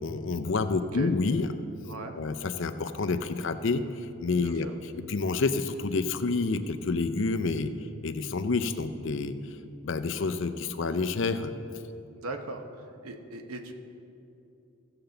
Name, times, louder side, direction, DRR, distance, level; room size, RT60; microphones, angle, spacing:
voice 1, 0.0-1.5 2.1-4.7 5.1-7.7 8.0-9.4 9.8-11.5, left 3 dB, 60° left, 8 dB, 0.5 m, -28 dB
voice 2, 0.7-1.1 1.9-2.2 4.4-4.7 12.2-13.7, right 2 dB, 90° right, 5 dB, 0.9 m, -39 dB
16.0 x 6.8 x 3.9 m, 2.8 s
head